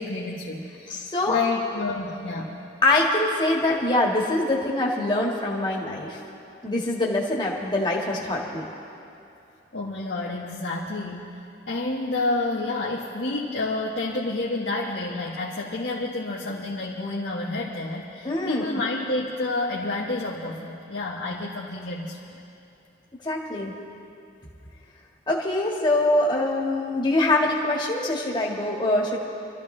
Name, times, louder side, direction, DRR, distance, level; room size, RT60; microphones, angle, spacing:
voice 1, 0.0-2.5 8.1-8.2 9.7-11.3 11.6-22.3, left 2 dB, 70° left, -4 dB, 1.3 m, -29 dB
voice 2, 0.9-1.4 2.8-6.2 6.6-8.6 18.2-18.6 23.2-23.7 25.3-29.2, left 2 dB, 25° left, -3 dB, 1.7 m, -24 dB
26.0 x 13.5 x 3.3 m, 2.8 s
head